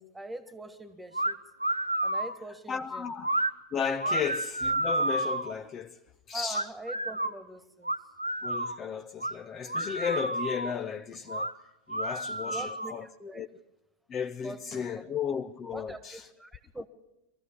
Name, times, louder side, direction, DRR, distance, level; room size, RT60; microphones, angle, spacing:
voice 1, 0.0-1.4 2.0-3.0 4.1-4.2 6.3-7.9 12.4-13.4 14.4-15.2 15.7-16.9, right 1 dB, 5° right, 1.8 m, -43 dB
sound 1, 1.1-1.3 1.6-2.4 3.2-3.5 4.0-5.5 6.5-7.3 7.8-8.8 9.2-9.3 9.7-10.7 11.3-11.5 11.9-13.0, right 1 dB, 85° right, 0.8 m, -30 dB
voice 2, 2.7-3.3 3.7-6.0 6.3-6.7 8.4-11.5 11.9-13.1 13.3-13.5 14.1-16.3 16.8-16.9, left 7 dB, 25° left, 0.7 m, -34 dB
23.5 x 15.0 x 8.6 m
figure-of-eight pair, 90°, 0 cm